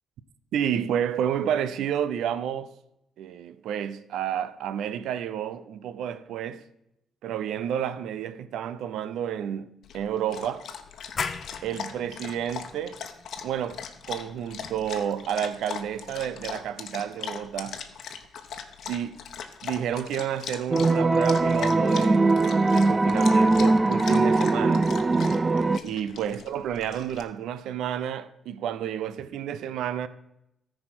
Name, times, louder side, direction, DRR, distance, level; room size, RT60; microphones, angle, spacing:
voice 1, 0.5-2.7 3.2-6.6 7.2-10.7 11.6-13.0 13.4-17.8 18.9-19.2 19.6-22.4 22.7-25.0 25.8-30.1, right 9 dB, 80° right, 0.5 m, -30 dB
Dog, 9.8-27.2, left 7 dB, 65° left, 1.0 m, -39 dB
sound 1, 11.2-16.6, left 5 dB, 45° left, 0.7 m, -39 dB
sound 2, 20.7-25.8, right 3 dB, 25° right, 0.3 m, -21 dB
13.5 x 4.9 x 5.9 m
cardioid pair, 90°, 0 cm